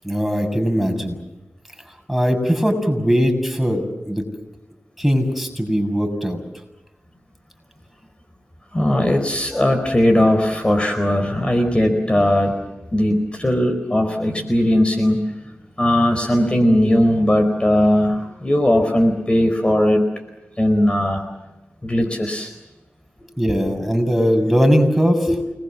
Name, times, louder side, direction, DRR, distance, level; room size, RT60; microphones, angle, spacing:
voice 1, 0.0-1.2 2.1-4.2 5.0-6.4 23.4-25.3, equal, 5° right, 5 dB, 6.8 m, -19 dB
voice 2, 8.7-12.6 12.9-20.0 20.6-21.2 21.8-22.5 23.5-23.6 25.3-25.4, left 1 dB, 25° left, 5 dB, 4.6 m, -18 dB
29.5 x 21.0 x 7.5 m, 1.0 s
cardioid pair, 55°, 4 cm